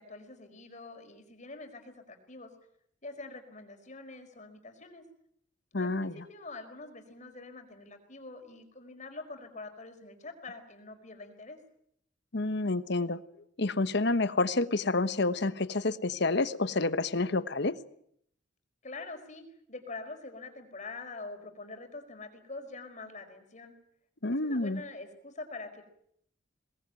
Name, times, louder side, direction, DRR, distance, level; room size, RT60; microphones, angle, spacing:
voice 1, 0.0-2.5 3.0-5.0 5.7-11.6 18.8-23.8 24.4-25.8, left 3 dB, 40° left, 6 dB, 4.9 m, -45 dB
voice 2, 5.7-6.2 12.3-13.2 13.6-17.8 24.2-24.8, left 2 dB, 60° left, 13 dB, 1.2 m, -29 dB
23.5 x 20.0 x 9.1 m, 0.69 s
head